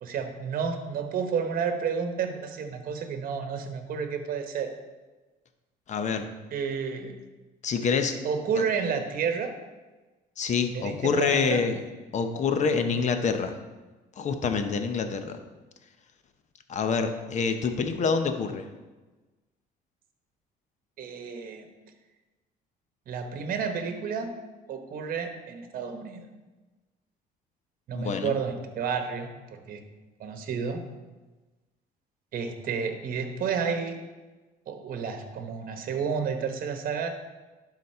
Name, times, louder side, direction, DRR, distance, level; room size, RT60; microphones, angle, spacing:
voice 1, 0.0-4.7 6.5-7.2 8.2-9.5 10.7-11.6 21.0-21.7 23.1-24.3 24.7-26.3 27.9-29.8 30.2-30.8 32.3-34.0 34.7-37.1, right 6 dB, 55° right, 6 dB, 1.1 m, -31 dB
voice 2, 5.9-6.2 7.6-8.2 8.6-8.7 10.4-11.8 12.1-13.5 14.2-15.4 16.7-18.7 27.9-28.4, left 5 dB, 45° left, 7 dB, 0.8 m, -26 dB
11.0 x 4.1 x 4.3 m, 1.2 s
cardioid pair, 110°, 17 cm